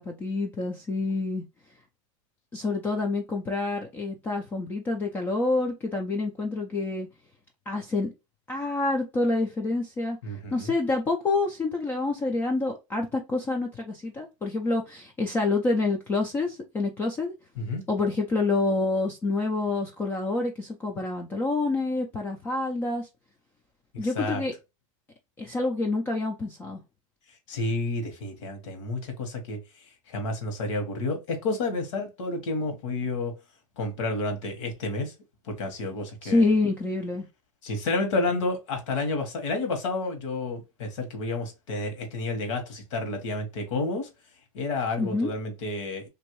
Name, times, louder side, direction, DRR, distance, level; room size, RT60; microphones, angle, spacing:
voice 1, 0.0-1.4 2.5-7.1 7.7-8.1 8.5-10.2 10.5-17.3 17.9-23.1 24.0-24.5 25.4-26.8 36.2-37.3 45.0-45.3, left 3 dB, 10° left, 0.3 m, -27 dB
voice 2, 10.2-10.7 17.6-17.8 23.9-24.4 27.5-33.3 33.8-35.1 35.4-36.5 37.6-44.1 44.5-46.1, left 2 dB, 60° left, 1.3 m, -30 dB
3.0 x 2.7 x 3.0 m
supercardioid pair, 155°, 18 cm